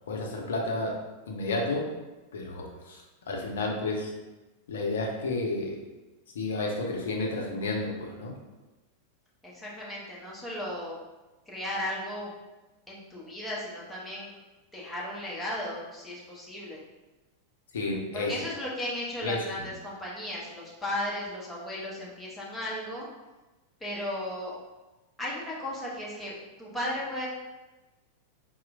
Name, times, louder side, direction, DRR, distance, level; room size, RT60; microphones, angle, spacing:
voice 1, 0.1-0.9 1.3-1.9 2.3-3.0 3.3-4.1 4.7-5.8 6.3-8.3 17.7-18.3 19.2-19.5, left 2 dB, 65° left, 0 dB, 0.5 m, -31 dB
voice 2, 9.4-11.0 11.5-12.3 12.9-14.3 14.7-16.8 18.1-23.1 23.8-24.5 25.2-27.3, left 1 dB, 10° left, -6 dB, 0.9 m, -35 dB
4.2 x 2.1 x 2.5 m, 1.1 s
figure-of-eight pair, 90°, 0 cm